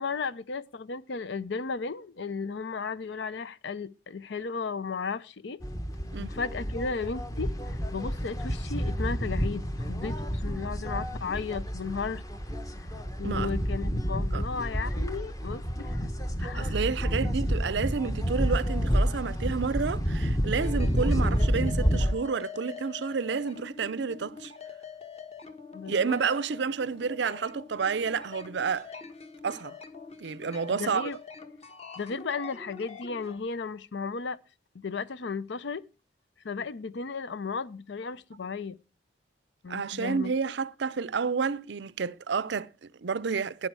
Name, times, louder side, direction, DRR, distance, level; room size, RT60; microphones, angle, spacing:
voice 1, 0.0-5.6 6.2-12.2 12.8-12.9 13.2-16.1 16.4-16.9 25.7-26.2 30.7-31.2 32.0-34.4 34.7-35.8 36.4-38.8 39.6-40.4, left 4 dB, 65° left, 0.5 m, -35 dB
sound 1, 5.6-22.1, equal, 20° left, 0.9 m, -29 dB
voice 2, 16.4-24.5 25.9-28.9 29.4-29.8 30.2-31.1 39.7-43.7, right 5 dB, 65° right, 0.5 m, -30 dB
sound 2, 20.5-33.4, left 5 dB, 35° left, 1.3 m, -45 dB
12.5 x 9.7 x 4.6 m
head